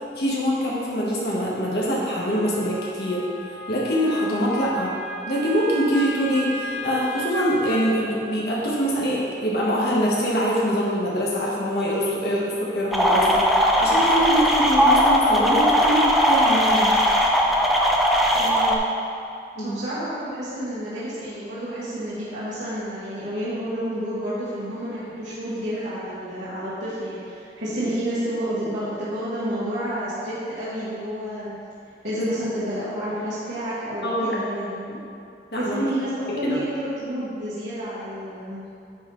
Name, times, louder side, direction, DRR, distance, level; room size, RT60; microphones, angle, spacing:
voice 1, 0.1-3.2 3.7-4.9 5.3-13.4 13.8-16.9 19.5-19.8 32.2-32.3 34.0-34.4 35.5-35.8 36.4-36.6, equal, 60° left, -5 dB, 1.4 m, -24 dB
Wind instrument woodwind instrument, 2.3-8.0, equal, 20° right, 1.5 m, -34 dB
sound 1, 12.9-18.8, equal, ahead, 0.5 m, -19 dB
voice 2, 18.3-18.7 19.6-31.5 32.0-35.0 35.6-38.6, equal, 80° right, -12 dB, 1.6 m, -30 dB
9.8 x 4.2 x 3.9 m, 2.5 s
head